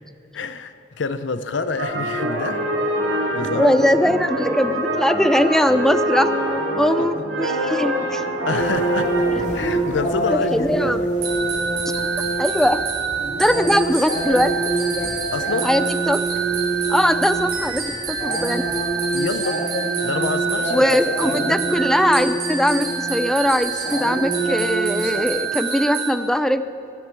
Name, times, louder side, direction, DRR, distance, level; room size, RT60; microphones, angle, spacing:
voice 1, 0.3-3.7 7.0-7.1 8.4-9.1 9.5-11.1 15.3-15.7 19.1-19.6 20.0-20.9 21.3-21.6, left 3 dB, 80° left, 12 dB, 0.7 m, -27 dB
sound 1, 1.8-9.9, right 1 dB, 85° right, 4.4 m, -25 dB
voice 2, 3.5-6.3 6.8-8.3 9.3-9.4 10.3-11.0 12.4-12.8 13.4-14.5 15.6-16.2 16.9-18.7 20.7-26.6, equal, 5° left, 12 dB, 0.5 m, -20 dB
sound 2, 8.6-25.2, right 2 dB, 45° left, 1.9 m, -26 dB
sound 3, 11.2-26.1, right 6 dB, 60° right, 3.5 m, -27 dB
19.5 x 7.9 x 8.2 m, 3.0 s
head